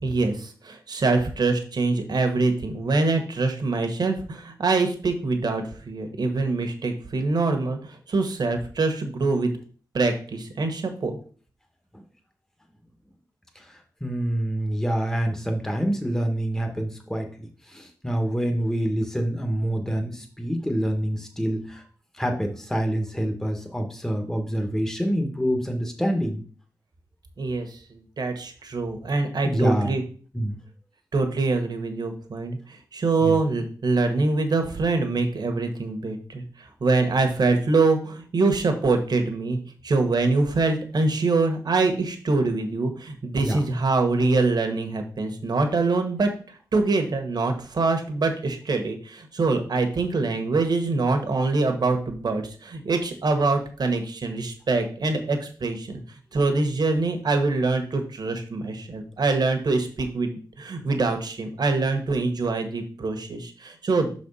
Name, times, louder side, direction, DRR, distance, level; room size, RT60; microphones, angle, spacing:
voice 1, 0.0-9.5 9.9-11.2 27.4-30.0 31.1-56.0 56.3-64.1, right 3 dB, 65° right, 5 dB, 1.4 m, -24 dB
voice 2, 13.5-21.8 22.2-26.4 29.4-30.0 30.3-30.6 33.2-33.4 43.4-43.6, equal, 5° left, 3 dB, 1.2 m, -26 dB
5.9 x 4.3 x 5.5 m, 0.42 s
wide cardioid pair, 75°, 8 cm